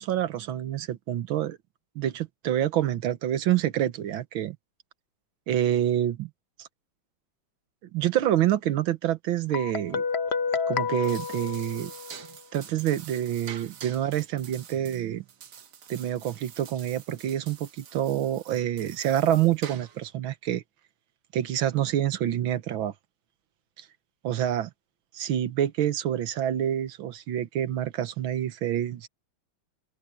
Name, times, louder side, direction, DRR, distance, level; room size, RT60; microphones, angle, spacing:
voice 1, 0.0-1.6 2.0-4.6 5.5-6.3 6.6-6.7 7.9-10.0 10.7-11.9 12.5-15.2 15.9-20.6 21.3-22.9 24.2-24.7 25.1-29.1, right 11 dB, 70° right, 1.7 m, -27 dB
Guitar, 9.5-12.3, left 6 dB, 60° left, 0.7 m, -30 dB
sound 1, 10.8-20.1, right 8 dB, 50° right, 1.1 m, -46 dB
open air
omnidirectional pair, 2.4 m